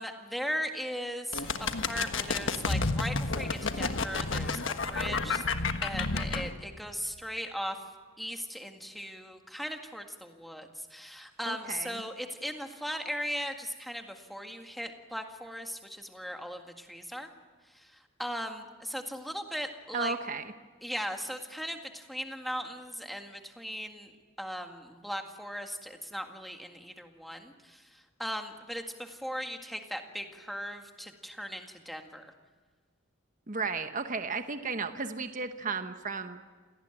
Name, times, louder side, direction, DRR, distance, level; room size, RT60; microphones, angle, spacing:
voice 1, 0.0-5.4 5.8-7.8 8.2-17.3 17.7-17.9 18.2-20.1 20.8-24.1 24.4-27.8 28.2-32.3, equal, ahead, 4 dB, 1.9 m, -38 dB
sound 1, 1.3-6.5, left 3 dB, 65° left, 1.4 m, -31 dB
voice 2, 11.4-12.0 19.9-20.4 33.5-36.4, right 4 dB, 40° right, 8 dB, 1.1 m, -34 dB
28.0 x 18.0 x 9.1 m, 1.5 s
head